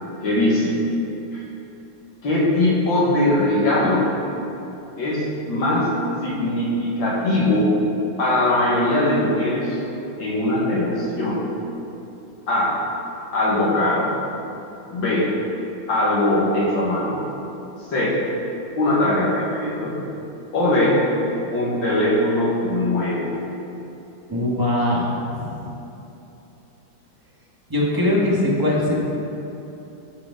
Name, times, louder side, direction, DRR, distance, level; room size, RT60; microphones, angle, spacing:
voice 1, 0.2-0.7 1.3-1.4 2.2-4.1 5.0-5.9 6.2-7.7 8.2-9.8 10.2-11.4 12.5-12.8 13.3-14.1 14.9-15.3 15.9-17.2 17.9-18.2 18.8-20.0 20.5-21.0 21.5-23.4, left 1 dB, 75° left, -6 dB, 2.4 m, -20 dB
voice 2, 24.3-25.7 27.7-29.0, left 1 dB, 15° right, -5 dB, 1.2 m, -21 dB
12.5 x 4.8 x 3.8 m, 3.0 s
omnidirectional pair, 2.1 m